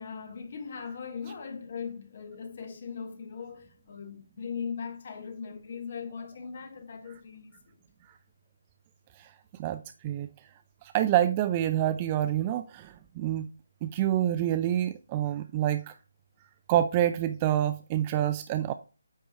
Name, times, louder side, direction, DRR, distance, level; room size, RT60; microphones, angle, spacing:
voice 1, 0.0-7.8, left 6 dB, 45° left, 1.2 m, -39 dB
voice 2, 9.6-10.3 10.8-13.5 13.8-15.9 16.7-18.7, right 12 dB, 25° right, 0.3 m, -27 dB
8.9 x 3.6 x 4.2 m
figure-of-eight pair, 150°, 0 cm